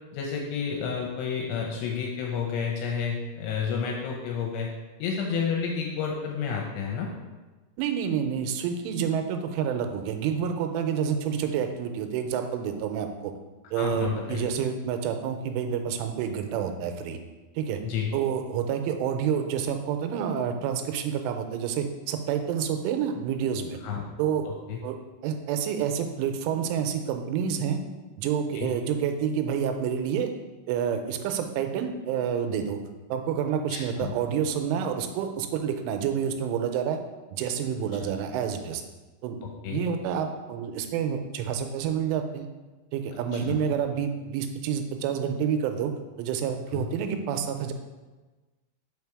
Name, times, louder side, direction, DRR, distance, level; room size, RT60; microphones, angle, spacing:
voice 1, 0.1-4.7 5.0-7.1 13.8-14.5 17.8-18.1 23.8-24.0 24.4-24.8 28.5-28.7 33.7-34.1 38.0-38.1 39.4-39.8 43.3-43.6 46.7-46.9, left 6 dB, 80° left, 0 dB, 2.6 m, -30 dB
voice 2, 7.8-13.3 13.7-17.2 17.6-17.8 18.1-23.8 24.2-24.5 24.8-25.0 25.2-27.8 28.2-30.3 30.7-32.8 33.1-37.0 37.3-38.8 39.2-39.4 39.7-42.5 42.9-45.9 46.2-47.7, right 8 dB, 90° right, 6 dB, 3.1 m, -28 dB
5.6 x 5.0 x 4.7 m, 1.2 s
omnidirectional pair, 5.5 m